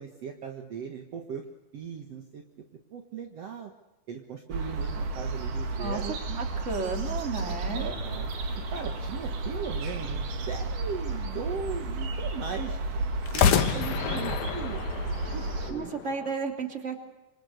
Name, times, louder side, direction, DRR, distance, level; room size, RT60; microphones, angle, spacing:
voice 1, 0.0-1.4 1.7-2.4 2.9-3.7 4.1-6.2 7.7-8.3 8.7-12.8 13.3-14.8 15.3-15.9, right 6 dB, 55° right, 4 dB, 2.5 m, -38 dB
sound 1, 4.5-15.7, right 3 dB, 75° right, 3.8 m, -32 dB
voice 2, 6.3-8.0 15.7-17.0, right 4 dB, 20° right, 4 dB, 3.1 m, -33 dB
sound 2, 7.4-9.2 13.2-16.3, left 7 dB, 65° left, 2.6 m, -30 dB
27.0 x 25.5 x 6.6 m, 1.0 s
omnidirectional pair, 3.7 m